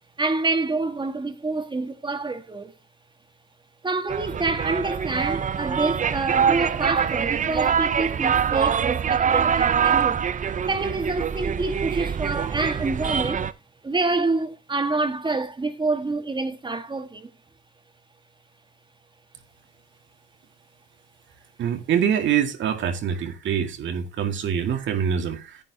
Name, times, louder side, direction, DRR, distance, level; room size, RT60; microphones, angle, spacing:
voice 1, 0.2-2.7 3.8-10.3 10.7-13.5 13.8-17.3, right 3 dB, 25° right, 1.5 m, -27 dB
sound 1, 4.1-13.5, right 7 dB, 40° right, 0.6 m, -24 dB
voice 2, 21.6-25.6, right 8 dB, 70° right, 1.9 m, -25 dB
11.0 x 8.9 x 2.8 m
cardioid pair, 90°, 20 cm